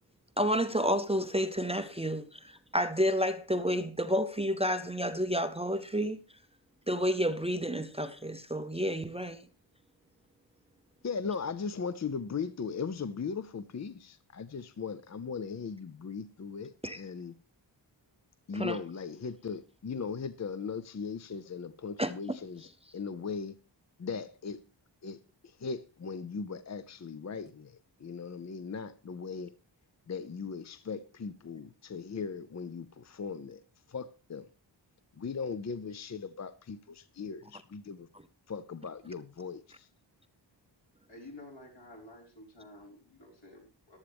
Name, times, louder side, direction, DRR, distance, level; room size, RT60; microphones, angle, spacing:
voice 1, 0.4-6.2 6.9-9.4 16.8-17.0 18.5-18.8 22.0-22.1 38.1-38.2, equal, 15° right, 0.6 m, -30 dB
voice 2, 11.0-17.3 18.5-22.7 22.9-23.5 24.0-24.6 25.0-25.2 25.6-29.5 30.1-33.6 33.9-34.5 35.2-38.1 38.5-39.9, left 5 dB, 40° left, 0.5 m, -38 dB
voice 3, 41.1-44.0, left 1 dB, 75° left, 5.2 m, -51 dB
14.5 x 11.5 x 3.5 m
wide cardioid pair, 120°, 45 cm